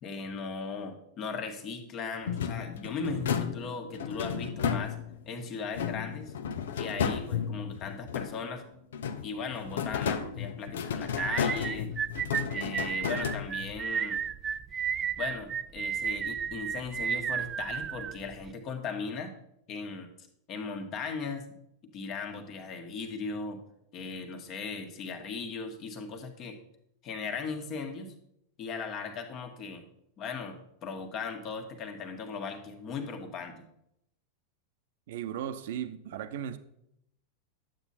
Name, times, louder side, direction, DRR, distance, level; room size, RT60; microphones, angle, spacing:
voice 1, 0.0-5.0 5.3-6.3 6.8-8.6 9.2-11.9 12.5-14.2 15.2-19.3 19.7-20.1 20.5-21.5 21.8-23.6 23.9-26.6 27.0-28.1 28.6-29.9 30.2-33.6, left 5 dB, 35° left, 6 dB, 1.6 m, -38 dB
sound 1, 2.3-5.3 5.7-8.6 8.9-13.9, left 7 dB, 60° left, 0.8 m, -33 dB
sound 2, 11.2-18.5, right 8 dB, 25° right, 0.3 m, -33 dB
voice 2, 35.1-36.6, right 10 dB, 55° right, 11 dB, 0.9 m, -36 dB
11.5 x 8.4 x 4.2 m, 0.76 s
figure-of-eight pair, 90°, 0 cm